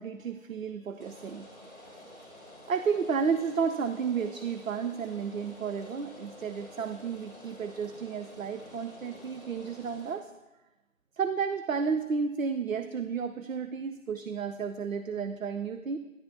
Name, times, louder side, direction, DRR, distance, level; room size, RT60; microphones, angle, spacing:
voice 1, 0.0-1.5 2.7-10.3 11.2-16.0, right 6 dB, 70° right, 9 dB, 0.5 m, -32 dB
Rain, 1.0-10.1, left 1 dB, 10° right, 1.7 m, -50 dB
10.5 x 8.9 x 2.8 m, 1.0 s
figure-of-eight pair, 165°, 42 cm